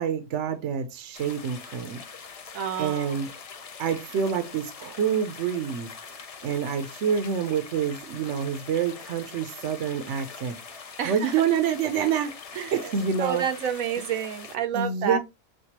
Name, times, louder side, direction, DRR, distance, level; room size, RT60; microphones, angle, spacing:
voice 1, 0.0-2.0 2.8-3.3 3.8-5.9 6.4-12.3 12.7-13.4 14.7-15.2, right 7 dB, 65° right, 0.9 m, -27 dB
sound 1, 1.1-14.6, left 5 dB, 75° left, 0.3 m, -43 dB
voice 2, 2.5-3.1 11.0-11.4 12.5-12.8 13.2-15.2, right 8 dB, 90° right, 1.2 m, -29 dB
6.5 x 2.3 x 2.8 m
omnidirectional pair, 1.4 m